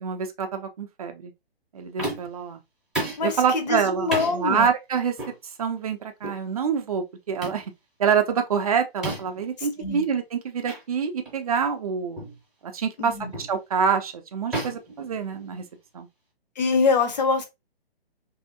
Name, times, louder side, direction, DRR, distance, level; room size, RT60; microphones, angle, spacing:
voice 1, 0.0-1.3 1.7-2.6 3.2-5.1 5.6-7.7 8.0-12.2 12.6-13.1 13.4-15.7 15.9-16.1, right 6 dB, 35° right, 0.5 m, -26 dB
sound 1, 2.0-2.4 2.9-3.3 4.1-4.4 5.2-5.4 6.2-6.4 7.4-7.6 9.0-9.4 10.7-10.8 11.2-11.4 12.2-12.4 13.3-13.6 14.5-15.7, right 2 dB, ahead, 0.7 m, -32 dB
voice 2, 3.2-4.7 9.6-10.0 13.0-13.3 16.6-17.4, left 4 dB, 45° left, 0.8 m, -24 dB
3.2 x 2.7 x 2.6 m
figure-of-eight pair, 135°, 31 cm